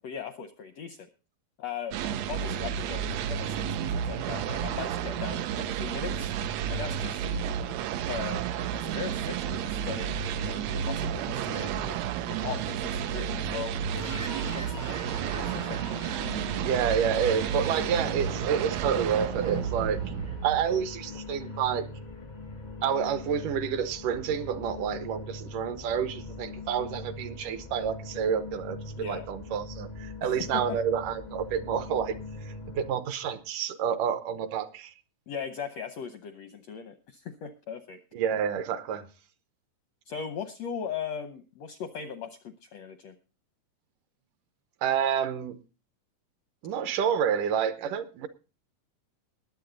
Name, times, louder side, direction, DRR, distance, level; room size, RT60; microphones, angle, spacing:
voice 1, 0.0-1.1 1.6-6.3 6.7-7.5 8.1-12.0 12.3-13.8 14.5-15.1 15.4-15.8 29.0-29.3 30.2-30.8 35.3-38.0 40.1-43.1, left 7 dB, 75° left, 9 dB, 1.5 m, -39 dB
sound 1, 1.9-20.9, right 8 dB, 90° right, 1.5 m, -31 dB
sound 2, 13.9-32.9, left 3 dB, 40° left, 0.5 m, -41 dB
voice 2, 16.6-20.0 20.4-21.9 22.8-34.9 38.1-39.1 44.8-45.6 46.6-48.3, right 8 dB, 75° right, 11 dB, 2.4 m, -29 dB
20.0 x 8.3 x 3.9 m, 0.33 s
omnidirectional pair, 4.0 m